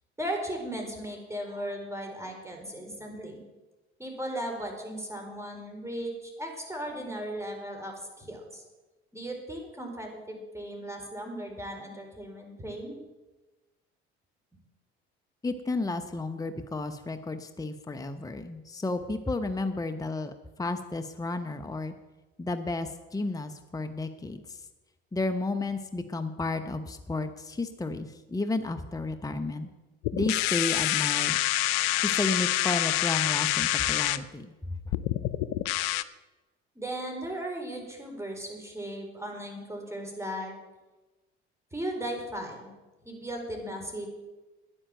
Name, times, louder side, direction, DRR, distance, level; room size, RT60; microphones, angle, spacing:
voice 1, 0.2-3.4 4.0-8.6 9.1-13.0 36.8-40.6 41.7-42.7 43.0-44.1, right 1 dB, 10° right, 1 dB, 4.4 m, -37 dB
voice 2, 15.4-20.3 20.6-21.9 22.4-24.6 25.1-29.7 30.1-31.4 32.0-34.8, left 2 dB, 10° left, 9 dB, 0.9 m, -32 dB
sound 1, 30.0-34.2 34.9-36.0, left 15 dB, 65° left, 0.7 m, -27 dB
10.0 x 9.9 x 7.7 m, 1.1 s
hypercardioid pair, 60°, 32 cm